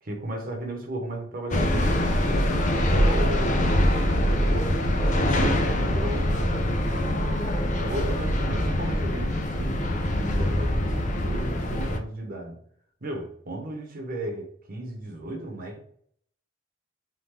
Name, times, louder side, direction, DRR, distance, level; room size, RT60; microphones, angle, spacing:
voice 1, 0.0-2.5 2.9-3.7 4.2-7.2 7.8-12.6 13.0-15.8, right 1 dB, 50° right, 1.0 m, -35 dB
sound 1, 1.5-12.0, left 1 dB, 40° left, 0.6 m, -24 dB
3.7 x 3.5 x 3.3 m
head